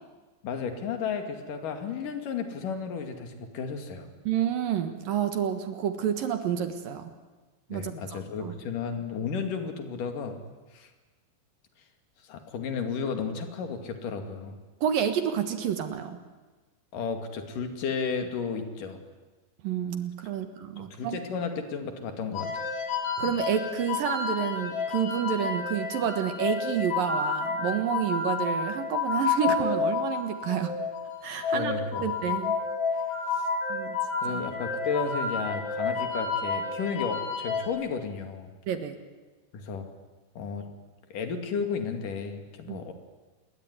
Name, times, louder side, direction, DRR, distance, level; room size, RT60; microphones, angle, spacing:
voice 1, 0.4-4.1 7.7-10.4 10.7-10.9 12.2-14.6 16.9-19.0 20.8-22.7 31.5-32.1 33.3-33.5 34.2-38.5 39.5-39.9 40.4-40.7 41.1-42.9, left 5 dB, 50° left, 6 dB, 3.6 m, -33 dB
voice 2, 4.2-7.1 7.7-8.6 14.8-16.2 19.6-21.2 23.2-30.8 31.2-31.7 32.0-32.6 33.7-34.0 34.3-34.4 38.7-39.0 42.7-42.8, right 9 dB, 60° right, 8 dB, 2.7 m, -29 dB
sound 1, 22.4-37.7, left 5 dB, 85° left, 6.2 m, -30 dB
28.5 x 21.5 x 9.8 m, 1.2 s
omnidirectional pair, 5.2 m